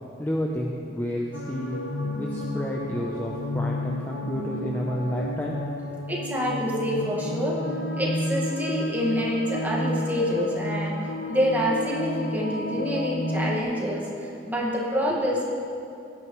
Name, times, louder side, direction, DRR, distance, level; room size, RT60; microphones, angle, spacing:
voice 1, 0.2-1.8 2.2-5.6, equal, 10° left, -2 dB, 0.6 m, -30 dB
sound 1, 1.3-13.6, left 1 dB, 80° left, 0.9 m, -31 dB
voice 2, 6.1-7.6 7.9-10.9 11.3-15.5, equal, 10° right, -5 dB, 1.7 m, -27 dB
16.5 x 9.5 x 3.1 m, 2.6 s
head